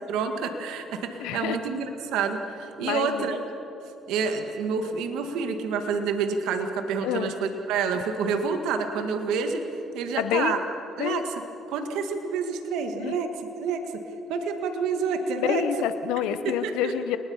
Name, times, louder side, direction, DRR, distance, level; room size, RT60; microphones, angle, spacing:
voice 1, 0.1-3.4 4.1-9.7 9.9-10.6 11.0-11.3 11.7-13.3 13.6-13.9 14.3-15.6 16.4-16.9, right 5 dB, 80° right, 6 dB, 1.9 m, -28 dB
voice 2, 1.2-1.6 2.8-3.4 7.0-7.3 10.2-10.5 11.0-11.2 13.0-13.2 15.4-17.2, left 10 dB, 85° left, 11 dB, 0.9 m, -28 dB
29.5 x 20.0 x 5.7 m, 2.9 s
supercardioid pair, 75°, 0 cm